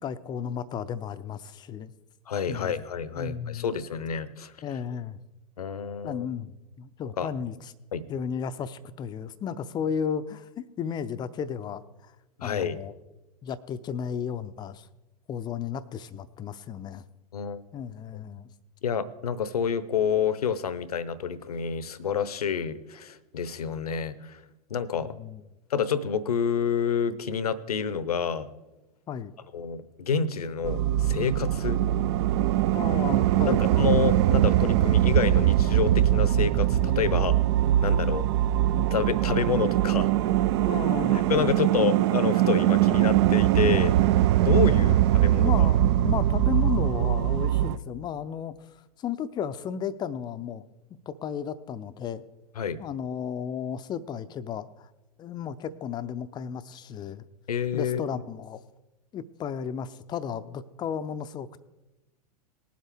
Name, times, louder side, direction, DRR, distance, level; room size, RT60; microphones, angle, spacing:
voice 1, 0.0-1.9 2.5-2.8 3.2-3.7 4.6-5.2 6.0-7.7 8.1-10.5 10.8-12.1 12.4-12.9 13.4-14.9 15.3-17.0 17.7-18.5 25.0-25.4 29.1-29.3 32.7-33.7 40.6-41.5 44.7-45.0 45.4-50.6 51.1-52.2 52.8-54.9 55.2-57.3 57.7-58.6 59.1-61.6, left 8 dB, 20° left, 12 dB, 0.5 m, -34 dB
voice 2, 2.3-4.5 5.6-6.3 7.2-7.3 7.9-8.0 12.4-12.8 17.3-17.6 18.8-24.4 24.7-25.1 25.7-28.5 29.5-31.8 33.5-37.4 37.8-38.3 38.9-40.1 41.1-44.0 44.4-44.9 45.2-45.7 52.6-52.8 57.5-58.0, left 6 dB, 70° left, 17 dB, 0.8 m, -28 dB
sound 1, 30.6-47.8, right 13 dB, 45° right, 0.4 m, -22 dB
19.5 x 7.7 x 3.5 m, 1.0 s
figure-of-eight pair, 95°, 21 cm